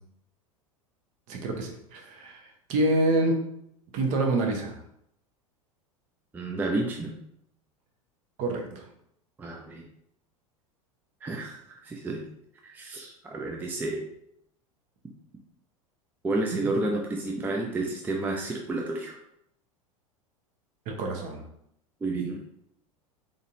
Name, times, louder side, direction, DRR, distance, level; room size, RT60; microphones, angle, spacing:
voice 1, 1.3-3.4 3.9-4.7 8.4-8.8 20.9-21.4, right 2 dB, 45° right, 2 dB, 0.9 m, -27 dB
voice 2, 6.3-7.1 9.4-9.8 11.2-12.2 12.6-14.0 16.2-19.2 22.0-22.4, right 2 dB, 10° right, 1 dB, 0.4 m, -31 dB
3.9 x 3.8 x 2.6 m, 0.75 s
figure-of-eight pair, 80°, 18 cm